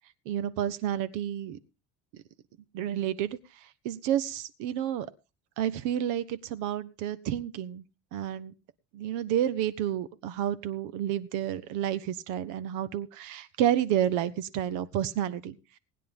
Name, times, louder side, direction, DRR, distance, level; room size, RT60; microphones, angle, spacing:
voice 1, 0.2-1.6 2.7-3.4 3.8-5.1 5.6-7.8 8.1-8.5 8.9-15.6, right 11 dB, 75° right, 14 dB, 1.3 m, -30 dB
19.5 x 10.0 x 3.6 m, 0.30 s
cardioid pair, 160°, 30 cm